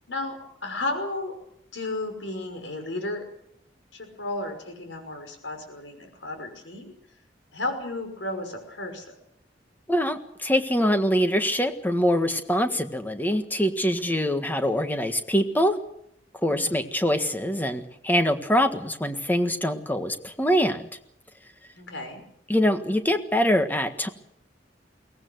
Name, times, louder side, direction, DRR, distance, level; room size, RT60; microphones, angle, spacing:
voice 1, 0.6-1.3 1.7-3.2 3.9-6.9 7.5-9.0 16.5-16.7 21.8-22.2, left 2 dB, 90° left, 5 dB, 5.8 m, -33 dB
voice 2, 9.9-15.8 16.4-20.9 22.5-24.1, equal, 10° left, 7 dB, 1.5 m, -24 dB
23.0 x 18.0 x 8.0 m, 0.75 s
head